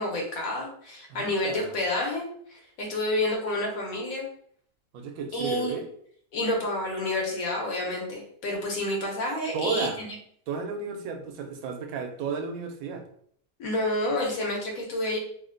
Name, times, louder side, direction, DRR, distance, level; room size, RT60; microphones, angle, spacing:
voice 1, 0.0-4.3 5.3-5.7 6.3-9.9 13.6-15.2, left 1 dB, 80° left, -1 dB, 1.3 m, -29 dB
voice 2, 1.1-1.8 4.9-5.9 9.5-10.0 10.5-13.0, right 4 dB, 85° right, 5 dB, 1.0 m, -33 dB
3.0 x 2.1 x 3.7 m, 0.63 s
omnidirectional pair, 1.4 m